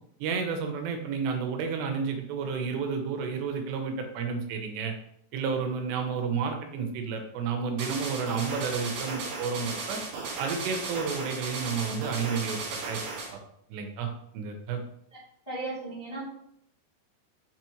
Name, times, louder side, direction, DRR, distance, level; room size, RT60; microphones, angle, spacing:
voice 1, 0.2-4.9 5.3-10.0 10.4-13.0 13.3-13.4 13.7-14.8, right 5 dB, 85° right, 4 dB, 3.0 m, -31 dB
sound 1, 7.8-13.3, right 3 dB, 65° right, 2.5 m, -35 dB
voice 2, 15.4-16.2, right 2 dB, 10° left, -9 dB, 1.5 m, -35 dB
5.9 x 5.6 x 3.1 m, 0.74 s
omnidirectional pair, 4.8 m